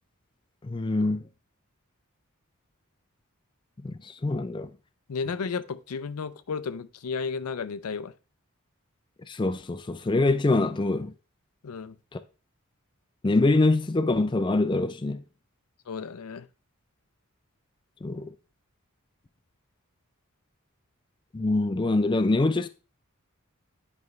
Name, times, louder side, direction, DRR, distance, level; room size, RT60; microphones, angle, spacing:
voice 1, 0.6-1.3 3.8-4.7 9.3-11.1 12.1-12.2 13.2-15.2 18.0-18.3 21.3-22.7, left 2 dB, 20° left, 0.4 m, -24 dB
voice 2, 5.1-8.1 11.6-12.0 15.9-16.5, left 5 dB, 85° left, 0.5 m, -33 dB
9.5 x 5.3 x 3.2 m
head